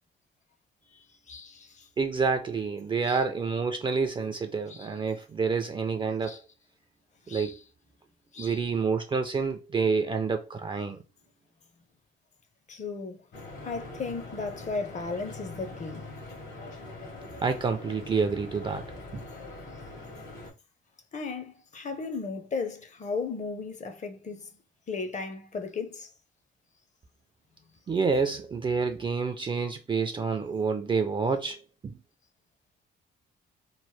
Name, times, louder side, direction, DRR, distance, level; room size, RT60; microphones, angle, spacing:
voice 1, 1.3-1.9 3.0-3.2 4.7-4.9 6.2-6.4 7.3-7.6 8.3-8.7 12.7-13.2 13.6-16.1 21.1-24.5 24.9-26.1, left 4 dB, 35° left, 0.6 m, -35 dB
voice 2, 2.0-6.4 7.3-7.6 8.4-11.0 17.4-18.9 19.1-19.2 27.9-31.6 31.8-31.9, right 5 dB, 25° right, 0.4 m, -28 dB
Stream / Boat Water vehicle, 13.3-20.5, left 2 dB, 75° left, 1.4 m, -43 dB
3.0 x 2.0 x 3.1 m
cardioid pair, 90°, 20 cm